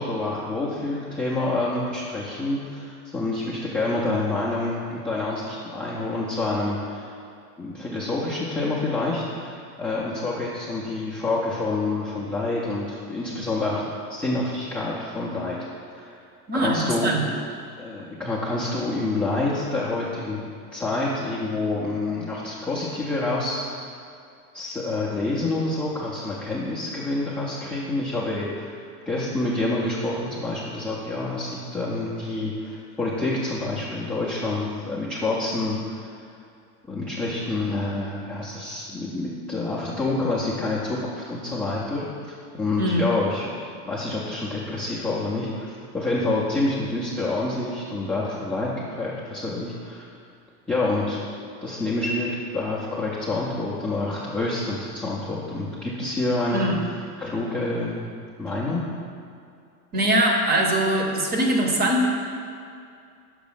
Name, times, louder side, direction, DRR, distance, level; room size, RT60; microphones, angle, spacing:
voice 1, 0.0-7.1 7.6-13.8 14.1-15.6 15.9-16.2 16.5-17.1 17.7-20.4 20.7-23.9 24.5-28.8 29.1-36.1 36.9-43.6 43.9-50.1 50.7-51.2 51.6-56.7 57.2-58.1 58.4-58.8, left 2 dB, 5° left, -8 dB, 0.4 m, -27 dB
voice 2, 16.5-17.3 42.8-43.1 56.5-56.8 59.9-62.1, right 1 dB, 20° right, 2 dB, 0.8 m, -22 dB
6.0 x 4.0 x 5.6 m, 2.4 s
supercardioid pair, 125°, 45 cm